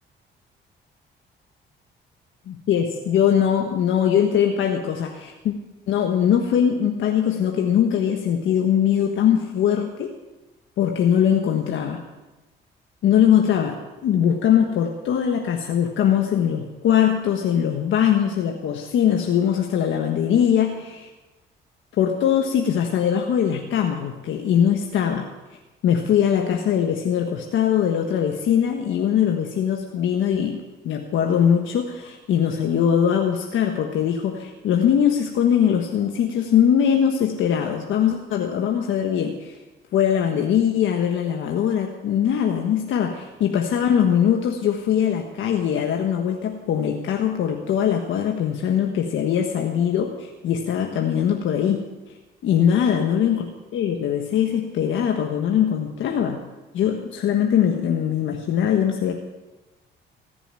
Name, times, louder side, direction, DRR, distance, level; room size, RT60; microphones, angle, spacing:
voice 1, 2.5-5.5 5.9-10.1 10.8-12.0 13.0-13.8 14.0-21.1 22.0-25.3 25.8-30.6 30.8-39.5 39.9-51.8 52.4-56.4 56.7-59.1, left 9 dB, 80° left, 2 dB, 1.4 m, -21 dB
19.0 x 7.1 x 9.0 m, 1.1 s
cardioid pair, 90°, 20 cm